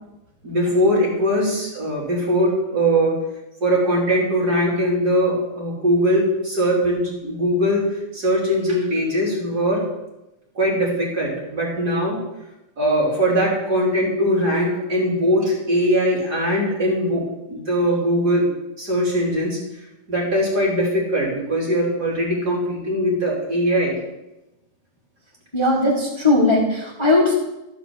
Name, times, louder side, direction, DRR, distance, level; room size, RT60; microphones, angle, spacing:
voice 1, 0.4-3.2 3.6-7.8 8.1-9.8 10.6-12.2 12.8-18.5 18.8-19.6 20.1-24.0, equal, 50° right, -4 dB, 3.7 m, -21 dB
voice 2, 25.5-27.3, left 2 dB, 15° left, -4 dB, 1.9 m, -18 dB
13.0 x 5.2 x 7.1 m, 0.94 s
omnidirectional pair, 2.1 m